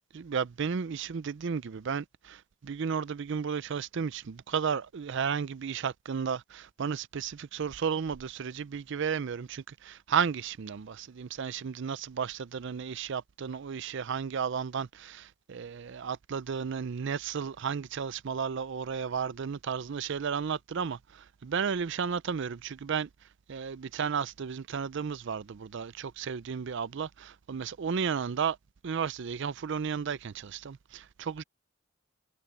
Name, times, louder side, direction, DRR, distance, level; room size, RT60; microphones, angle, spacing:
voice 1, 0.1-23.1 23.5-28.6 28.8-31.4, right 6 dB, 60° right, 0.5 m, -33 dB
head